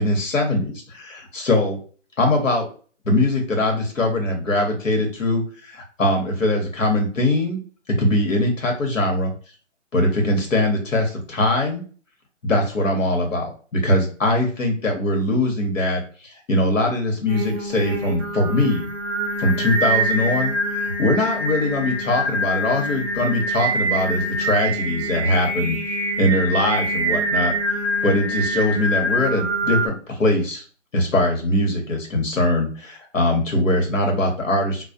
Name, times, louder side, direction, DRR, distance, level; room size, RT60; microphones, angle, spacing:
voice 1, 0.0-1.8 2.2-2.7 3.0-7.6 8.0-9.3 9.9-11.8 12.4-18.9 19.4-25.8 26.2-30.6 30.9-34.8, left 1 dB, 85° left, 2 dB, 1.1 m, -21 dB
Singing, 17.3-29.9, right 1 dB, 15° right, 0.5 m, -25 dB
2.3 x 2.1 x 2.6 m, 0.39 s
figure-of-eight pair, 155°, 38 cm